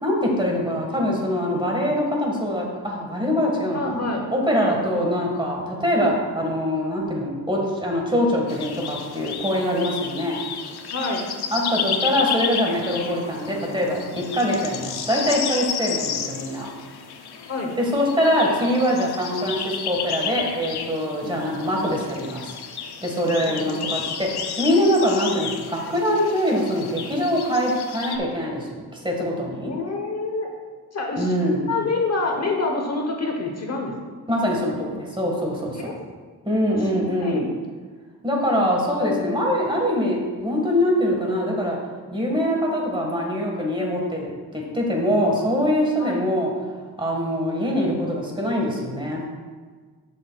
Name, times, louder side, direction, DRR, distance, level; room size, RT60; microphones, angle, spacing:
voice 1, 0.0-3.9 4.3-10.4 11.5-16.7 17.8-22.5 23.0-24.3 24.6-29.7 31.2-31.6 34.3-35.9 36.4-37.4 38.2-41.8 42.1-46.5 47.0-49.3, equal, 10° right, -1 dB, 1.5 m, -23 dB
voice 2, 3.7-4.2 4.9-5.1 10.9-11.3 17.5-17.8 21.2-21.4 23.5-23.8 29.7-30.5 30.9-31.3 31.7-33.9 35.7-35.9 36.8-36.9 37.2-37.4 46.0-46.2, left 3 dB, 40° left, 1 dB, 1.0 m, -27 dB
sound 1, 8.5-28.2, left 7 dB, 75° left, 0.8 m, -32 dB
12.0 x 6.4 x 2.3 m, 1.5 s
wide cardioid pair, 140°, 39 cm